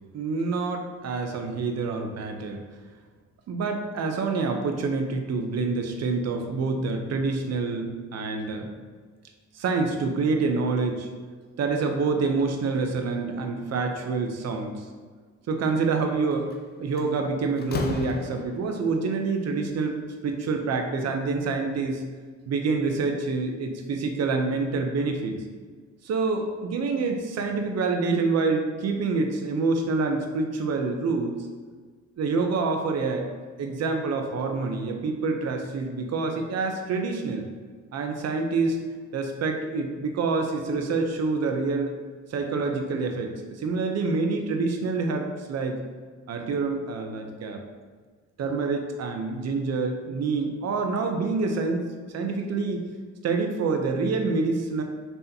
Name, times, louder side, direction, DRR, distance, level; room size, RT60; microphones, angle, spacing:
voice 1, 0.1-2.6 3.5-8.7 9.5-11.1 11.6-14.9 15.5-16.5 16.8-22.0 22.5-25.4 26.0-31.5 32.2-33.3 33.6-37.5 37.9-38.8 39.1-41.9 42.3-45.8 46.3-47.6 48.4-51.9 52.1-52.8 53.2-54.8, right 4 dB, 60° right, 4 dB, 0.8 m, -27 dB
Slam, 16.3-16.6 17.0-18.8, left 4 dB, 35° left, 0.5 m, -33 dB
5.6 x 3.3 x 2.8 m, 1.5 s
cardioid pair, 90°, 30 cm